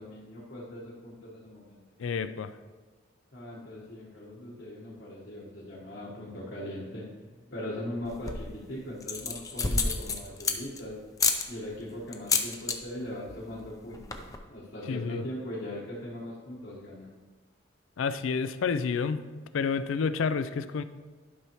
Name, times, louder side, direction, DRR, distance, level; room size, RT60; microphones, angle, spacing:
voice 1, 0.0-1.8 3.3-11.0 11.5-14.2 14.5-17.1, left 1 dB, 60° left, -6 dB, 1.3 m, -40 dB
voice 2, 2.0-2.6 14.9-15.2 18.0-20.8, left 5 dB, 80° left, 13 dB, 0.4 m, -30 dB
sound 1, 8.0-8.5 9.0-10.8 11.2-11.4 12.1-12.8 13.1-13.4 13.6-13.7 13.9-14.4, left 4 dB, 15° left, 0.5 m, -28 dB
11.0 x 5.6 x 3.0 m, 1.4 s
head